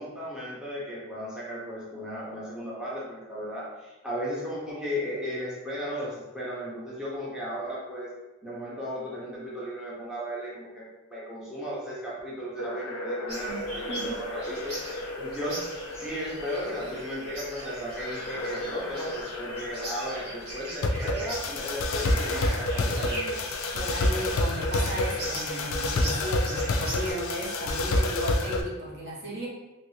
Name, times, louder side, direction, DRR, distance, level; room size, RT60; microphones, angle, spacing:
voice 1, 0.0-8.1 8.4-14.8 15.2-15.6 15.9-23.3, equal, 5° right, -8 dB, 0.6 m, -35 dB
sound 1, 12.6-28.6, left 2 dB, 65° left, 0.4 m, -30 dB
sound 2, 13.3-27.1, equal, 85° right, 1.4 m, -40 dB
voice 2, 23.7-29.5, equal, 55° right, -5 dB, 0.9 m, -35 dB
3.0 x 2.5 x 3.0 m, 1.1 s
head